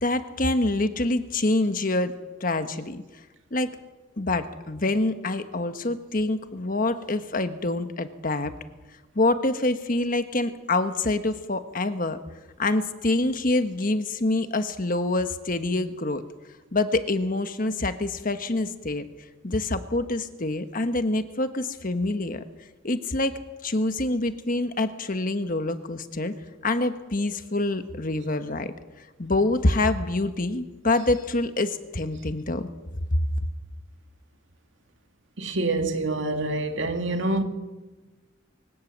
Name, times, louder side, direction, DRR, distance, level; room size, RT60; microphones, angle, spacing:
voice 1, 0.0-2.1 2.4-3.0 3.5-3.7 4.2-8.5 9.1-12.2 12.6-16.2 16.7-19.0 19.4-22.4 22.8-26.3 26.6-32.7 33.1-33.2, left 2 dB, 40° left, 1.3 m, -26 dB
voice 2, 35.4-37.4, right 2 dB, 65° right, 2.4 m, -26 dB
24.0 x 17.5 x 7.5 m
head